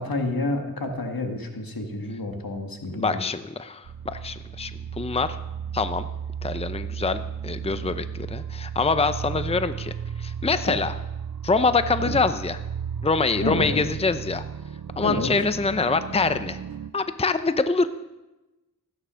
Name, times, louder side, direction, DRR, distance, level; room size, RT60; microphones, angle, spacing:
voice 1, 0.0-3.2 10.7-10.8 12.1-12.2 13.4-13.8 15.0-15.3, left 2 dB, 80° left, 4 dB, 1.9 m, -29 dB
voice 2, 2.9-4.7 5.0-5.4 5.7-6.1 6.4-9.9 10.2-10.9 11.4-12.6 13.0-14.4 15.0-16.6 16.9-17.9, left 4 dB, 15° left, 11 dB, 0.6 m, -25 dB
sound 1, 3.8-16.9, right 8 dB, 80° right, 0.7 m, -34 dB
15.5 x 9.6 x 6.3 m, 1.1 s
wide cardioid pair, 60°, 35 cm